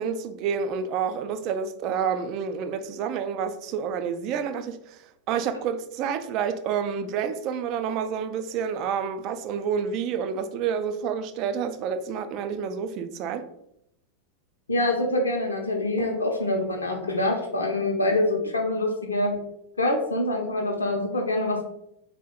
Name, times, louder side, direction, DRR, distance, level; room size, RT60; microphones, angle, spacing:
voice 1, 0.0-5.0 5.3-13.5, right 7 dB, 40° right, 0.3 m, -29 dB
voice 2, 14.7-19.4 19.8-21.7, left 1 dB, 75° left, 0.6 m, -25 dB
3.4 x 2.1 x 3.6 m
figure-of-eight pair, 90°, 0 cm